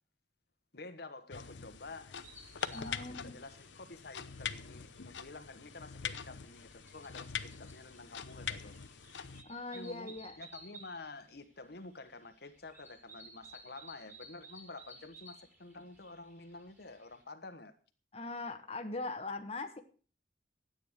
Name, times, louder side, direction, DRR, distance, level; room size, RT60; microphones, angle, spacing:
voice 1, 0.7-2.1 2.7-8.8 9.7-17.7, left 3 dB, 60° left, 1.3 m, -49 dB
sound 1, 1.3-9.4, left 7 dB, 80° left, 0.8 m, -43 dB
sound 2, 2.2-17.2, right 2 dB, 10° right, 3.3 m, -57 dB
voice 2, 2.7-3.4 9.5-10.3 18.1-19.8, left 2 dB, 35° left, 1.2 m, -41 dB
13.0 x 9.1 x 6.6 m
head